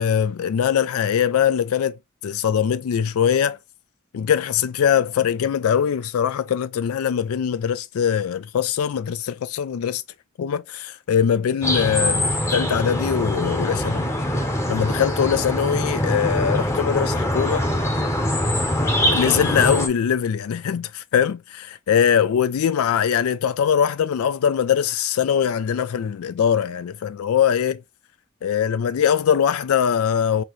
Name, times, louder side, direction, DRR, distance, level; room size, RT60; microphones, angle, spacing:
voice 1, 0.0-2.0 2.2-3.6 4.1-10.0 10.4-14.1 14.7-17.7 19.1-27.8 28.4-30.4, left 8 dB, 75° left, 0.4 m, -22 dB
sound 1, 11.6-19.9, left 1 dB, 15° left, 0.8 m, -23 dB
5.7 x 2.7 x 3.1 m
head